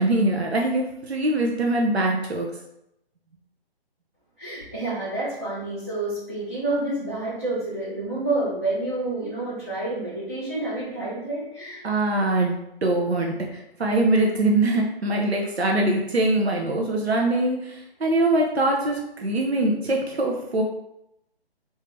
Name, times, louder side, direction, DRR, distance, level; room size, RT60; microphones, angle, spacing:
voice 1, 0.0-2.5 11.8-20.6, right 2 dB, 90° right, 0 dB, 0.7 m, -23 dB
voice 2, 4.4-11.8, right 2 dB, 15° right, -11 dB, 0.3 m, -29 dB
3.4 x 2.7 x 3.2 m, 0.82 s
figure-of-eight pair, 140°, 31 cm